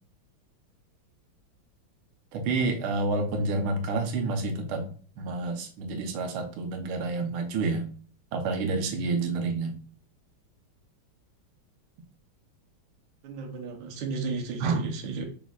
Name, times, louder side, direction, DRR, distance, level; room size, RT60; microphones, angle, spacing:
voice 1, 2.3-4.9 5.2-7.9 8.3-9.8 14.6-14.9, right 3 dB, 90° right, 4 dB, 1.6 m, -29 dB
voice 2, 13.2-15.3, right 4 dB, 65° right, 2 dB, 1.4 m, -34 dB
4.3 x 4.0 x 2.3 m, 0.42 s
omnidirectional pair, 2.3 m